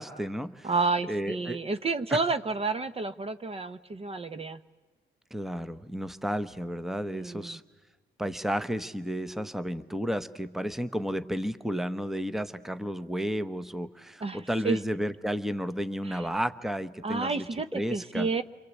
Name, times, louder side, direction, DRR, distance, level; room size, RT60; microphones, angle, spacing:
voice 1, 0.0-0.7 1.1-1.6 5.3-7.6 8.2-17.5 17.7-18.3, equal, ahead, 12 dB, 0.9 m, -32 dB
voice 2, 0.6-4.6 7.1-7.6 14.2-14.8 16.0-16.3 17.0-18.4, right 3 dB, 30° right, 12 dB, 0.9 m, -30 dB
29.5 x 24.0 x 8.3 m, 1.2 s
cardioid pair, 90°, 20 cm